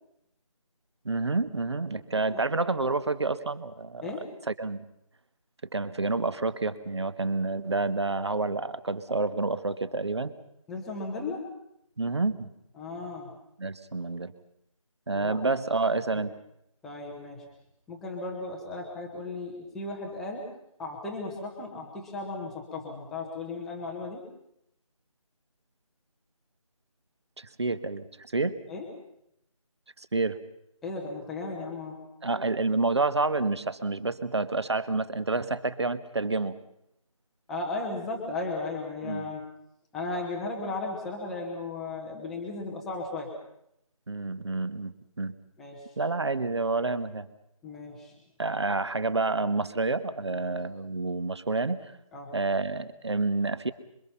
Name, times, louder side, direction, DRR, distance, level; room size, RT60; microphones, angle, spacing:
voice 1, 1.0-4.1 4.5-4.8 5.7-10.3 12.0-12.5 13.6-14.3 15.1-16.3 27.4-28.6 30.0-30.4 32.2-36.6 39.0-39.3 44.1-45.3 46.0-47.3 48.4-51.9 52.3-53.7, right 3 dB, 50° right, 14 dB, 1.5 m, -29 dB
voice 2, 10.7-11.5 12.8-13.3 15.1-15.4 16.1-16.2 16.8-17.5 17.9-20.5 20.8-24.2 28.7-28.9 30.8-32.0 37.5-39.5 39.9-43.3 45.6-46.0 47.6-48.2 50.3-50.5 52.1-52.3, left 3 dB, ahead, -1 dB, 0.9 m, -36 dB
26.5 x 23.0 x 5.7 m, 0.79 s
figure-of-eight pair, 165°, 18 cm